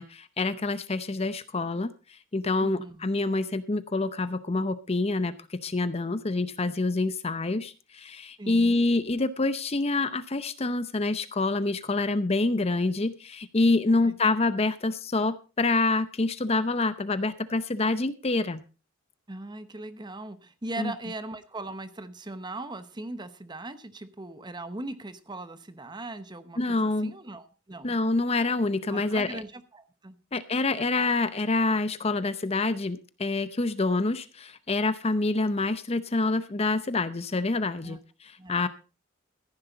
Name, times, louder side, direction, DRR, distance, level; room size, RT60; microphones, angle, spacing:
voice 1, 0.0-1.9 2.3-18.6 20.8-20.9 26.6-27.1 27.8-29.4 30.3-38.7, left 3 dB, 30° left, 14 dB, 0.7 m, -27 dB
voice 2, 2.6-3.1 8.4-8.8 13.9-14.1 19.3-27.9 28.9-30.2 37.8-38.0 38.4-38.7, right 2 dB, 20° right, 12 dB, 0.9 m, -39 dB
14.5 x 10.5 x 4.0 m, 0.33 s
head